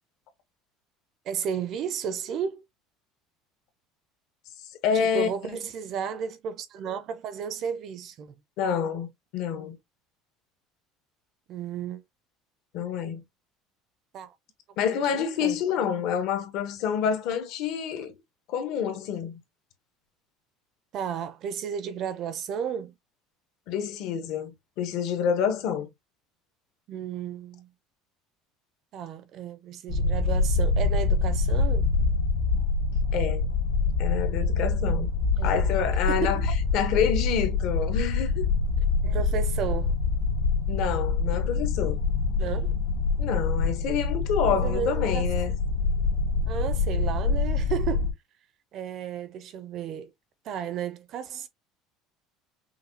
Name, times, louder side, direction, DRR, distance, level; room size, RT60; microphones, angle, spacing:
voice 1, 1.3-2.6 4.9-8.3 11.5-12.0 14.1-14.3 14.8-15.6 20.9-22.9 26.9-27.7 28.9-31.9 35.4-35.6 36.1-36.5 39.0-40.0 42.4-42.8 44.2-45.6 46.5-48.1 48.7-50.1 50.4-51.5, right 8 dB, 35° right, 0.5 m, -33 dB
voice 2, 4.8-5.6 8.6-9.8 12.7-13.2 14.8-18.1 18.5-19.4 23.7-25.9 33.1-33.5 34.0-35.1 35.4-36.4 36.7-38.5 40.7-42.0 43.2-45.5, left 7 dB, 55° left, 1.1 m, -28 dB
sound 1, 29.9-48.1, left 4 dB, 75° left, 1.2 m, -25 dB
5.7 x 2.3 x 2.7 m
cardioid pair, 175°, 0 cm